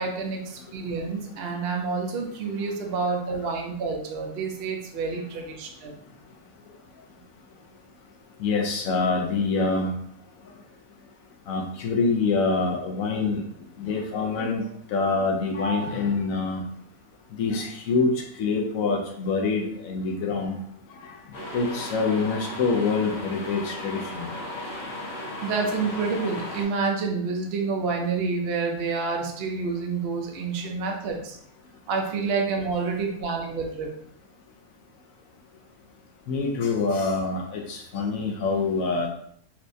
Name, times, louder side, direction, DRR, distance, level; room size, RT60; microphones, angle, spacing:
voice 1, 0.0-6.0 25.4-31.4 31.9-33.9, right 4 dB, 60° right, 1 dB, 0.6 m, -28 dB
voice 2, 8.4-9.9 11.5-13.4 13.8-14.6 14.9-16.6 17.4-18.1 18.4-20.6 20.9-21.2 21.5-24.3 36.3-39.1, left 4 dB, 70° left, 1 dB, 0.9 m, -25 dB
sound 1, 21.3-26.6, left 1 dB, 45° left, 0.8 m, -36 dB
4.4 x 2.2 x 2.6 m, 0.67 s
omnidirectional pair, 1.6 m